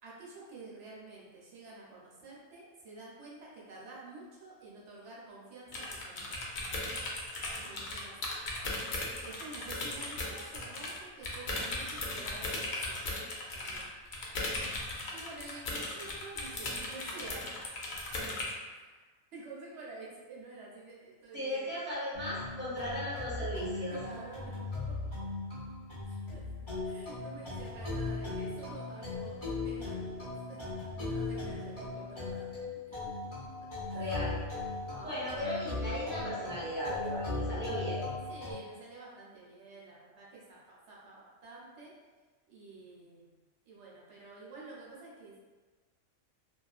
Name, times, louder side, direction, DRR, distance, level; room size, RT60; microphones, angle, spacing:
voice 1, 0.0-6.6 7.6-8.3 9.2-13.1 13.5-13.9 15.1-17.4 18.1-21.7 23.9-24.9 26.0-26.4 26.8-30.6 31.0-33.3 33.9-34.2 34.9-35.6 38.3-41.9 42.5-43.3 43.7-45.4, right 3 dB, 65° right, -5 dB, 1.0 m, -49 dB
sound 1, 5.7-11.0 11.2-18.5, left 2 dB, 70° left, 0.4 m, -37 dB
voice 2, 21.3-24.0 33.9-34.4 35.0-38.0, equal, 10° right, -10 dB, 0.7 m, -36 dB
sound 2, 22.1-38.5, left 3 dB, 30° left, 0.6 m, -38 dB
2.5 x 2.4 x 2.3 m, 1.3 s
omnidirectional pair, 1.3 m